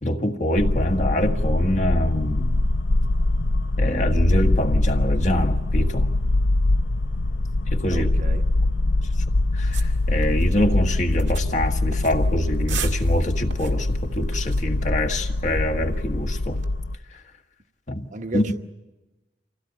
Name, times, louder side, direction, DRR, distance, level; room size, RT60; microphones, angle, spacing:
voice 1, 0.0-2.7 3.8-6.1 7.7-8.1 9.5-16.6 17.9-18.1 18.3-18.6, left 1 dB, 40° left, 1.6 m, -25 dB
sound 1, 0.6-17.0, left 2 dB, 75° left, 0.7 m, -23 dB
voice 2, 7.9-8.4 18.1-18.6, right 2 dB, 40° right, 1.1 m, -33 dB
sound 2, 9.7-16.7, right 8 dB, 90° right, 1.9 m, -41 dB
26.0 x 16.5 x 9.3 m
head